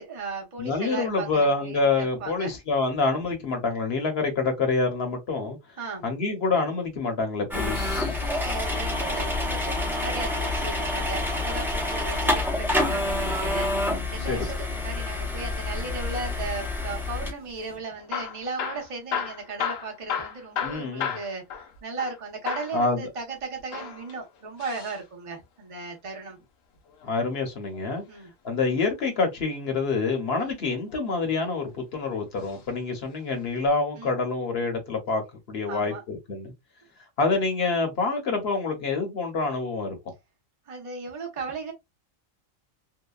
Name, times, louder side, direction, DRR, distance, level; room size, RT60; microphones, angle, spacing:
voice 1, 0.0-2.5 5.8-6.0 8.2-21.4 21.8-26.4 28.1-28.3 30.4-30.6 34.0-34.2 35.7-36.0 40.7-41.7, right 3 dB, 30° right, 0.8 m, -36 dB
voice 2, 0.6-5.6 6.0-8.2 14.3-14.4 20.6-21.1 22.7-23.1 27.0-28.0 28.4-35.2 35.5-36.5 37.2-40.0, left 3 dB, 55° left, 1.1 m, -27 dB
sound 1, 7.5-17.3, left 2 dB, ahead, 0.5 m, -27 dB
Hammer / Drill, 18.0-22.2 22.5-22.8 23.6-25.0 26.8-28.0 29.7-30.2 30.9-31.7 32.4-32.6 32.9-33.0 33.7-33.8, left 8 dB, 90° left, 1.1 m, -34 dB
2.8 x 2.2 x 2.3 m
omnidirectional pair, 1.3 m